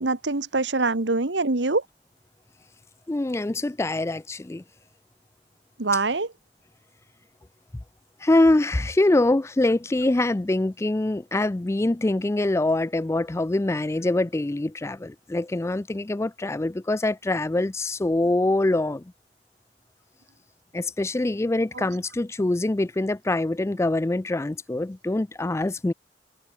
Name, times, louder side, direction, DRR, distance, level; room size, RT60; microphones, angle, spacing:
voice 1, 0.0-1.8 5.8-6.3, right 3 dB, 80° right, 1.6 m, -24 dB
voice 2, 3.1-4.6 8.2-19.0 20.7-25.9, left 2 dB, 15° left, 0.4 m, -24 dB
head